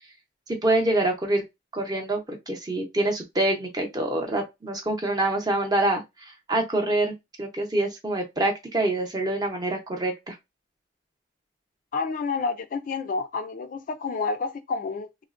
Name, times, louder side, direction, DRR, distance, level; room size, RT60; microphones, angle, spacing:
voice 1, 0.6-1.4 1.7-7.1 7.4-10.4, right 2 dB, 20° right, 0.7 m, -26 dB
voice 2, 11.9-15.2, left 4 dB, 45° left, 0.3 m, -29 dB
3.5 x 2.1 x 2.4 m
head